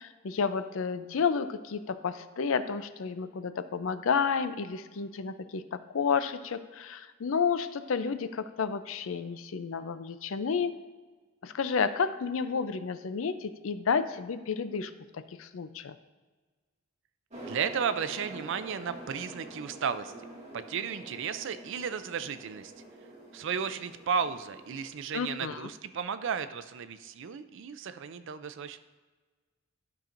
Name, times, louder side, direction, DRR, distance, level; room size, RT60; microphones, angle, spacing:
voice 1, 0.0-5.6 5.9-10.7 11.4-15.9 25.1-25.7, left 5 dB, 70° left, 11 dB, 0.5 m, -31 dB
sound 1, 17.3-24.9, right 2 dB, 35° right, 1.8 m, -46 dB
voice 2, 17.4-20.1 20.5-22.7 23.3-28.8, right 7 dB, 60° right, 12 dB, 0.4 m, -34 dB
12.0 x 5.9 x 2.6 m, 1.4 s
head